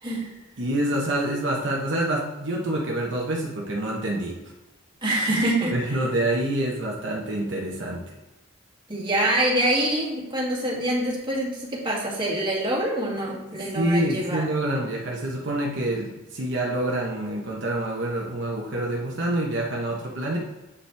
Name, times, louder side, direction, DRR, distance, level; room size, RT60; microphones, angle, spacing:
voice 1, 0.6-4.4 5.7-8.1 13.7-20.4, right 1 dB, 70° right, -2 dB, 1.0 m, -27 dB
voice 2, 5.0-5.8 8.9-14.4, right 1 dB, 25° right, -5 dB, 2.0 m, -25 dB
8.4 x 5.3 x 3.4 m, 1.1 s
head